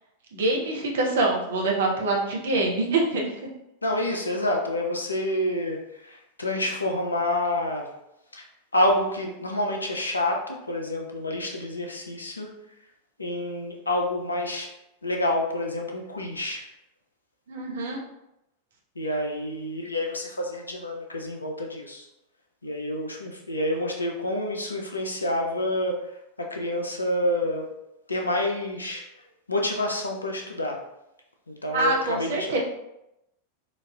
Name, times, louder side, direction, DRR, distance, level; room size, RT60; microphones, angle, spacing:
voice 1, 0.3-3.3 17.5-18.0 31.7-32.6, right 2 dB, 60° right, -1 dB, 0.7 m, -25 dB
voice 2, 3.8-7.9 8.3-8.4 8.7-12.5 13.2-14.7 15.0-16.7 19.0-22.1 22.6-26.0 26.4-27.7 28.1-29.0 29.5-30.8 31.5-32.6, left 1 dB, 80° left, 1 dB, 0.5 m, -28 dB
4.0 x 2.5 x 2.2 m, 0.87 s
figure-of-eight pair, 90°, 0 cm